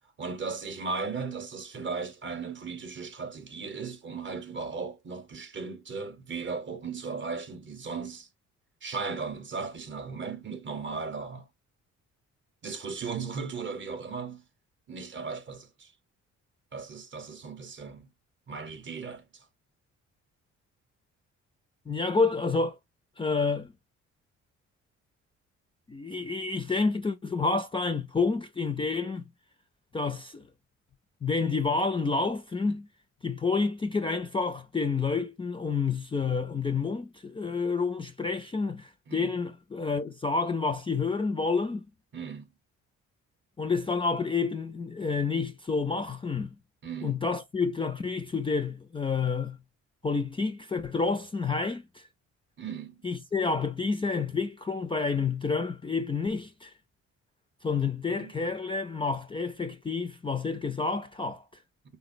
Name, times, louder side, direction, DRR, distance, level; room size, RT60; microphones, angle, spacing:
voice 1, 0.2-8.3 8.8-11.5 12.6-14.4 14.9-15.9 16.7-18.1 18.5-19.4 39.1-39.3 42.1-42.5 46.8-47.2 52.6-53.0 58.1-58.3, right 5 dB, 40° right, 0.7 m, -36 dB
voice 2, 21.9-22.8 23.2-23.7 25.9-29.2 29.9-30.4 31.2-32.9 33.2-41.8 43.6-46.5 47.0-49.6 50.0-52.0 53.0-56.7 57.6-61.4, left 4 dB, 20° left, 0.3 m, -29 dB
3.7 x 2.0 x 2.5 m
cardioid pair, 90°, 30 cm